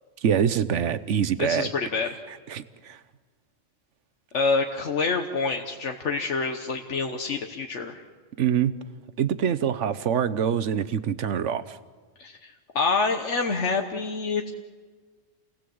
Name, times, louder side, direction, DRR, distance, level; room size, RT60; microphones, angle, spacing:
voice 1, 0.2-1.7 2.5-3.0 8.4-8.7 9.2-11.8, right 8 dB, 85° right, 14 dB, 1.2 m, -25 dB
voice 2, 1.4-2.1 4.3-8.0 12.2-14.5, left 4 dB, 80° left, 4 dB, 1.5 m, -27 dB
28.5 x 18.5 x 7.8 m, 1.5 s
omnidirectional pair, 1.2 m